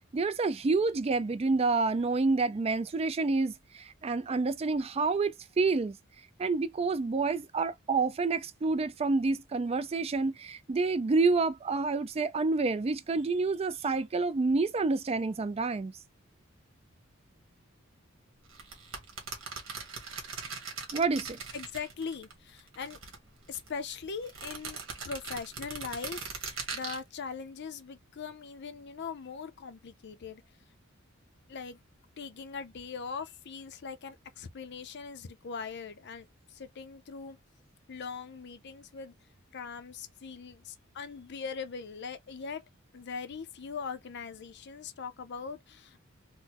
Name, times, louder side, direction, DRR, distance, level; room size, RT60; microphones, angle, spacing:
voice 1, 0.1-6.0 6.4-15.9 20.9-21.4, right 3 dB, 30° right, 0.4 m, -28 dB
sound 1, 18.5-22.3 22.6-23.7 24.2-27.0, right 5 dB, 75° right, 1.4 m, -40 dB
voice 2, 21.5-23.0 23.5-30.4 31.5-31.8 32.2-37.4 37.9-39.1 39.5-42.6 42.9-46.0, left 5 dB, 55° left, 0.5 m, -41 dB
3.9 x 2.1 x 2.9 m
head